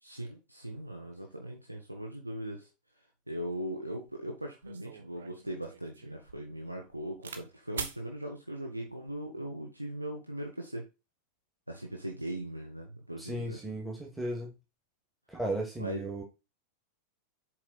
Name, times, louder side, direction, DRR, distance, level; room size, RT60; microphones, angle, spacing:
voice 1, 0.0-2.7 3.3-10.8 11.7-13.6 15.8-16.0, right 1 dB, 85° right, 1 dB, 1.3 m, -39 dB
sound 1, 4.1-4.2 4.6-7.4 7.7-8.0 8.9-9.2, right 6 dB, 65° right, 1.2 m, -43 dB
voice 2, 13.2-14.5 15.3-16.2, right 1 dB, 5° right, -1 dB, 1.9 m, -35 dB
7.5 x 4.8 x 4.1 m, 0.27 s
figure-of-eight pair, 90°, 0 cm